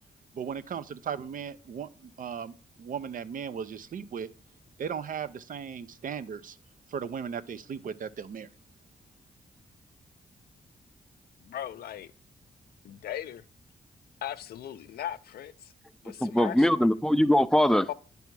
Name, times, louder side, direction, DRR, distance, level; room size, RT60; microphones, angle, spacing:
voice 1, 0.3-4.3 4.8-6.6 6.9-8.5, right 7 dB, 60° right, 0.5 m, -37 dB
voice 2, 11.4-12.1 12.8-13.4 14.2-15.7 16.0-16.7 17.9-18.0, left 11 dB, 80° left, 0.4 m, -38 dB
voice 3, 16.2-17.9, left 1 dB, 5° left, 0.4 m, -22 dB
9.2 x 3.5 x 6.0 m
cardioid pair, 70°, 16 cm